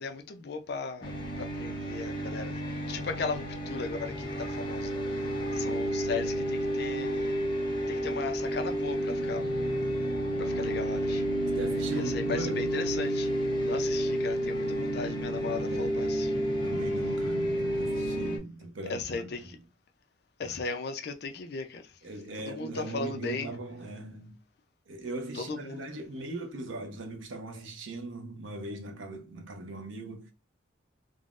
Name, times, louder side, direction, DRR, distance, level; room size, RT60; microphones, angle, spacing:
voice 1, 0.0-2.6 2.9-4.9 5.6-7.3 7.9-9.4 10.6-11.2 11.9-13.3 13.6-16.4 18.9-19.4 20.4-21.8 22.6-23.5 25.5-25.8, left 4 dB, 55° left, 0.4 m, -36 dB
sound 1, 1.0-18.4, equal, 25° left, 0.7 m, -30 dB
voice 2, 11.5-12.9 15.6-16.2 16.6-19.6 20.4-20.6 22.0-24.4 24.9-30.3, right 2 dB, 80° right, 0.6 m, -40 dB
3.6 x 2.0 x 2.4 m
head